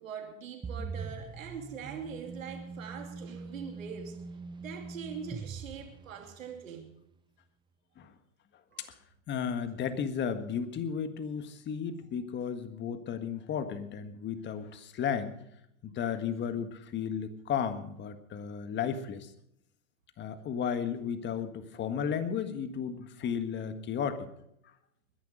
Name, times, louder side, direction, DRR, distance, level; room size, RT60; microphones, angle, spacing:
voice 1, 0.0-4.2 4.6-6.9 8.7-8.9, right 6 dB, 80° right, 3 dB, 2.8 m, -43 dB
sound 1, 0.6-6.6, right 4 dB, 10° right, 0.9 m, -42 dB
voice 2, 9.3-15.3 15.8-19.3 20.2-24.3, left 7 dB, 25° left, 10 dB, 1.7 m, -34 dB
21.0 x 11.0 x 5.1 m, 0.76 s
hypercardioid pair, 110°, 40 cm